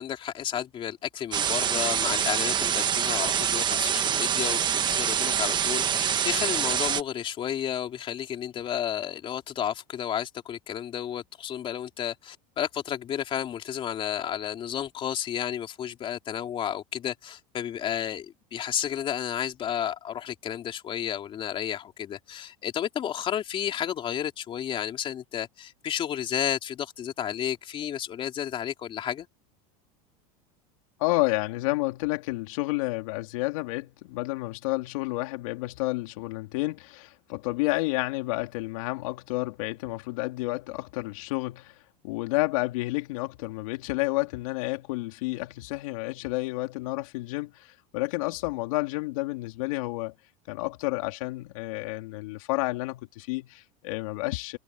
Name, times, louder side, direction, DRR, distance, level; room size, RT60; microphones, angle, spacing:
voice 1, 0.0-29.3, left 10 dB, 30° left, 3.4 m, -32 dB
sound 1, 1.3-7.0, right 8 dB, 25° right, 1.4 m, -25 dB
voice 2, 31.0-41.8 42.0-50.1 50.5-54.6, left 22 dB, 75° left, 3.7 m, -30 dB
supercardioid pair, 145°, 18 cm